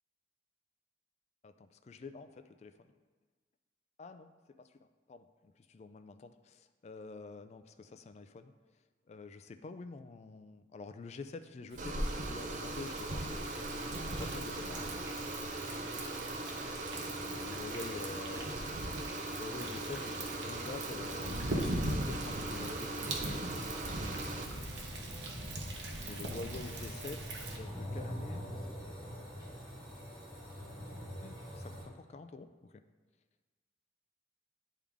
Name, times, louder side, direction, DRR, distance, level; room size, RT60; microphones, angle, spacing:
voice 1, 1.4-2.9 4.0-4.3 4.6-8.5 9.1-13.4 14.1-15.1 16.9-18.7 19.4-23.5 26.0-28.4 31.2-32.7, left 3 dB, 40° left, 9 dB, 0.3 m, -47 dB
Thunder, 11.7-27.6, right 1 dB, 75° right, 0.9 m, -40 dB
sound 1, 11.8-24.4, right 2 dB, 45° right, 0.5 m, -40 dB
sound 2, 12.6-31.8, equal, 20° right, 1.4 m, -47 dB
9.8 x 3.7 x 3.5 m, 1.4 s
head